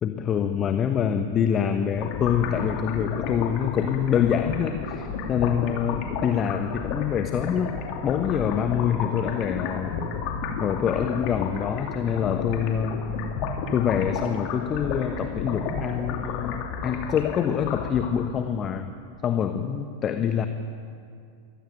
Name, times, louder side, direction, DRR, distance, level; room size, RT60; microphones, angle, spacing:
voice 1, 0.0-7.7 8.0-9.9 10.6-13.0 13.7-18.9 19.2-20.5, left 8 dB, 25° left, 8 dB, 1.2 m, -25 dB
sound 1, 2.0-18.4, left 5 dB, 40° left, 2.9 m, -32 dB
23.0 x 17.0 x 9.4 m, 2.4 s
figure-of-eight pair, 90°, 0 cm